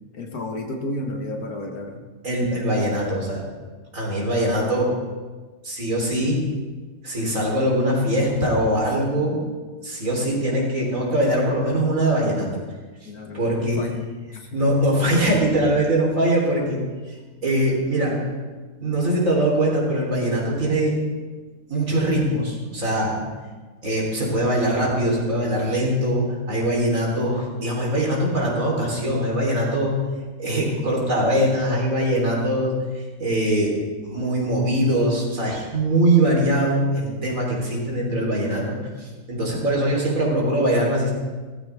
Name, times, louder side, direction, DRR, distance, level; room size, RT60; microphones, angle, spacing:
voice 1, 0.1-2.0 13.1-14.0 14.3-14.6, left 1 dB, 65° left, 3 dB, 2.0 m, -32 dB
voice 2, 2.2-3.4 3.9-4.9 5.6-6.4 7.0-9.4 9.8-12.5 13.0-13.1 13.3-13.8 14.5-16.8 17.1-17.2 17.4-18.2 18.8-21.0 21.7-23.2 23.8-30.0 30.4-33.7 34.0-41.1, right 1 dB, 55° right, -3 dB, 4.1 m, -22 dB
18.0 x 14.5 x 3.5 m, 1.3 s
omnidirectional pair, 1.7 m